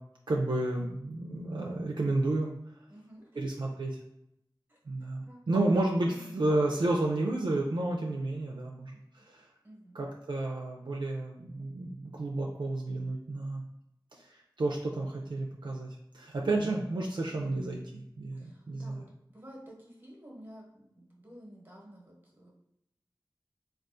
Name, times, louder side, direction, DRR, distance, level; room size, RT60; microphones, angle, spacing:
voice 1, 0.3-2.5 3.4-3.9 4.9-9.5 9.9-13.6 14.1-19.0, right 2 dB, 65° right, -1 dB, 0.4 m, -31 dB
voice 2, 2.9-3.5 4.7-4.8 5.3-5.7 6.1-6.4 8.9-9.0 9.6-10.0 18.3-19.0 19.3-22.5, right 1 dB, 25° right, -3 dB, 1.0 m, -51 dB
3.4 x 2.3 x 2.5 m, 0.81 s
wide cardioid pair, 50°, 8 cm